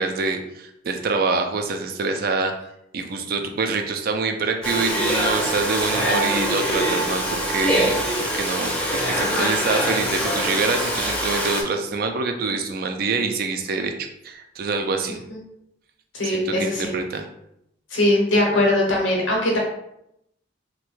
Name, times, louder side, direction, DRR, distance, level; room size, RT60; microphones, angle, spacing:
voice 1, 0.0-2.5 2.9-13.9 14.2-15.2 16.2-17.3, right 4 dB, 50° right, 5 dB, 0.3 m, -25 dB
Domestic sounds home sounds, 4.6-11.6, equal, 5° left, 0.5 m, -23 dB
voice 2, 16.1-17.0 17.9-19.6, left 1 dB, 85° left, -2 dB, 0.9 m, -21 dB
3.1 x 2.2 x 3.0 m, 0.80 s
head